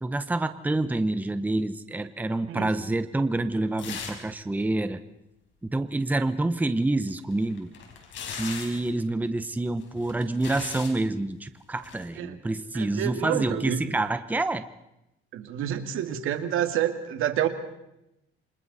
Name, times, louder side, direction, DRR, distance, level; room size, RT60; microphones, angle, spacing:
voice 1, 0.0-5.0 5.6-7.7 8.3-14.6, right 2 dB, 10° right, 10 dB, 0.9 m, -27 dB
sound 1, 3.8-4.3 4.6-4.7 7.1-8.9 9.8-11.0 11.8-12.0, left 6 dB, 65° left, 5.2 m, -38 dB
voice 2, 12.7-13.8 15.3-17.5, right 11 dB, 75° right, 7 dB, 2.3 m, -28 dB
28.5 x 25.5 x 4.2 m, 0.86 s
cardioid pair, 140°, 21 cm